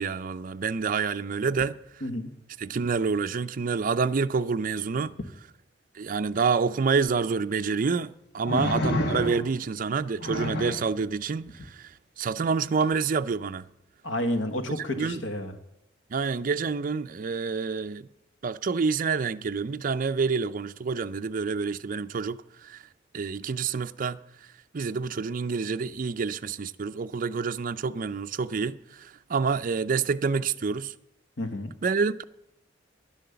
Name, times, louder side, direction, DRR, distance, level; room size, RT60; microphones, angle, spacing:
voice 1, 0.0-1.8 2.6-5.2 5.9-13.7 15.0-15.2 16.1-18.1 18.4-22.8 23.1-24.2 24.7-30.9 31.8-32.2, right 5 dB, 45° right, 0.4 m, -28 dB
sound 1, 7.1-7.2 8.4-9.6 10.2-10.9 12.8-12.9, left 1 dB, 60° left, 1.5 m, -29 dB
voice 2, 14.0-15.5 31.4-31.7, left 1 dB, 75° left, 1.3 m, -30 dB
11.0 x 10.0 x 6.9 m
head